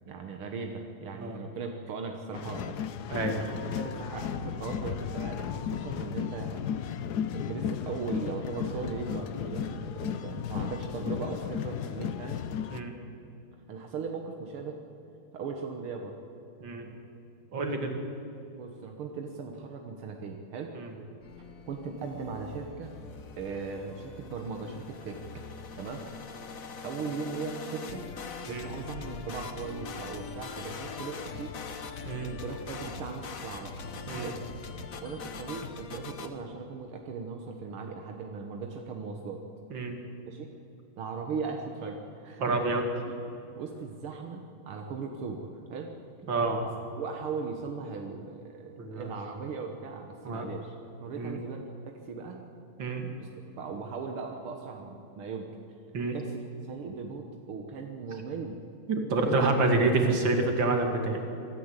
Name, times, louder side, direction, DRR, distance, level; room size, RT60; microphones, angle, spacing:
voice 1, 0.1-2.8 3.3-6.6 7.3-12.4 13.7-14.8 15.3-16.2 17.9-18.0 18.5-21.1 21.7-22.9 23.4-25.2 25.8-26.0 26.8-28.0 28.5-31.5 32.2-33.7 34.2-34.4 35.0-39.4 40.3-40.5 41.0-42.8 43.0-45.9 46.9-51.6 51.9-52.4 53.2-53.3 53.6-55.5 56.1-58.6 59.1-59.4 59.7-60.0, right 5 dB, 85° right, 3 dB, 2.2 m, -38 dB
sound 1, 2.3-12.8, left 8 dB, 65° left, 1.1 m, -34 dB
voice 2, 17.5-17.9 20.8-20.9 28.5-28.7 32.1-32.3 34.1-34.3 39.7-40.0 42.4-42.8 46.3-46.6 48.8-49.1 50.2-50.5 51.2-51.4 52.8-53.1 55.9-56.2 58.9-61.2, right 3 dB, 60° right, 4 dB, 3.1 m, -28 dB
sound 2, 21.2-36.3, left 5 dB, 45° left, 1.3 m, -42 dB
25.0 x 13.5 x 8.2 m, 2.9 s
omnidirectional pair, 2.3 m